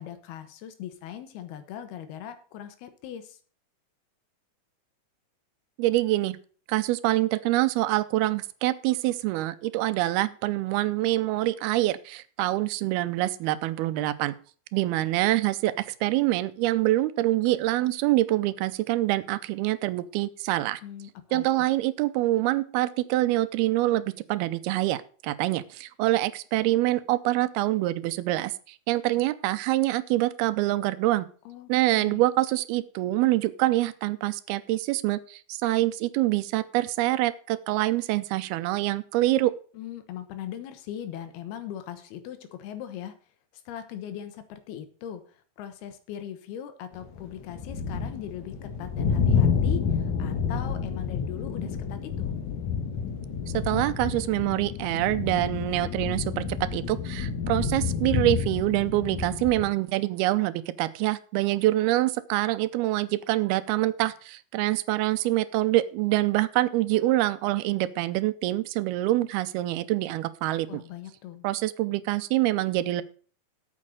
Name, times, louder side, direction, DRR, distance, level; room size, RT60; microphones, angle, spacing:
voice 1, 0.0-3.4 20.8-21.7 31.5-31.7 32.0-32.3 39.7-43.2 43.5-52.3 70.7-71.5, left 10 dB, 85° left, 10 dB, 3.2 m, -40 dB
voice 2, 5.8-6.4 6.7-14.3 14.7-20.8 21.3-31.3 31.7-39.5 53.5-56.4 56.7-70.7 71.4-73.0, right 16 dB, 85° right, 14 dB, 2.6 m, -25 dB
sound 1, 46.9-59.7, left 6 dB, 60° left, 2.7 m, -29 dB
8.8 x 7.5 x 6.4 m, 0.41 s
omnidirectional pair, 4.4 m